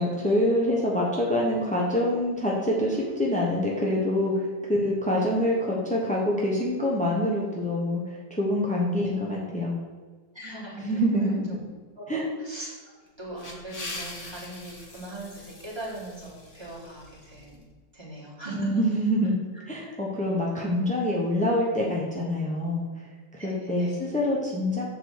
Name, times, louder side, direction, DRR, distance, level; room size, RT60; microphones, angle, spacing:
voice 1, 0.0-9.7 10.8-11.4 12.1-12.2 18.5-19.3 19.7-22.9 23.3-24.8, left 1 dB, 5° left, -3 dB, 0.6 m, -26 dB
voice 2, 10.3-11.6 12.0-12.8 13.2-17.6 17.9-18.7 19.8-20.4 23.4-24.0, right 1 dB, 15° right, -7 dB, 2.9 m, -40 dB
sound 1, 13.1-17.6, left 2 dB, 40° left, 1.7 m, -42 dB
7.4 x 4.8 x 6.6 m, 1.4 s
omnidirectional pair, 2.0 m